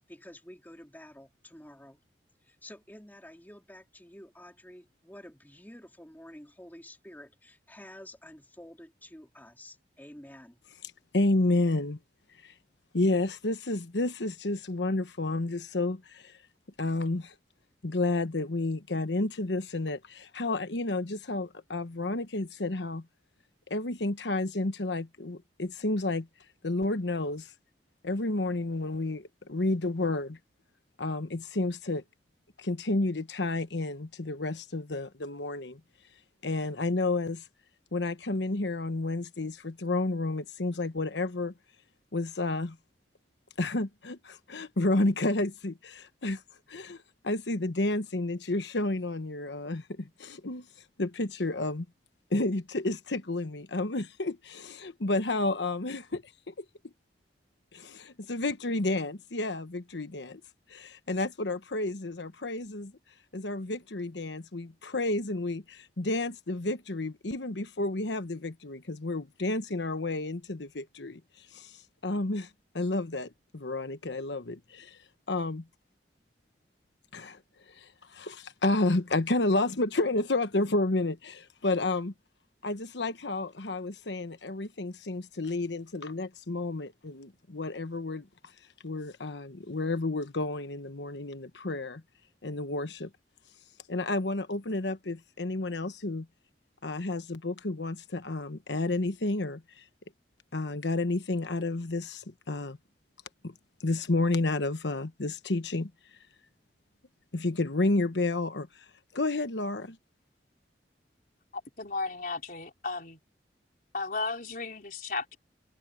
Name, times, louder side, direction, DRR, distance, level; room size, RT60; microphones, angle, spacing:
voice 1, 0.1-2.0 2.4-10.6, left 1 dB, 10° left, 3.4 m, -50 dB
voice 2, 11.1-12.0 12.4-12.5 12.9-16.3 16.8-17.3 17.8-23.0 23.7-26.3 26.6-27.5 28.0-30.4 31.0-32.0 32.6-35.8 36.4-37.5 37.9-41.5 42.1-42.8 43.6-46.4 46.7-50.7 51.0-51.9 52.3-56.6 57.7-60.4 60.7-62.9 63.3-71.2 71.5-71.8 72.0-72.5 72.7-75.0 75.3-75.6 77.1-77.4 77.8-82.1 82.6-88.3 88.8-92.0 92.4-93.1 93.9-96.3 96.8-99.8 100.5-102.8 103.4-103.5 103.8-105.9 107.3-108.8 109.1-110.0, left 2 dB, 85° left, 1.2 m, -31 dB
voice 3, 111.5-113.2 113.9-115.4, left 3 dB, 50° left, 4.4 m, -34 dB
head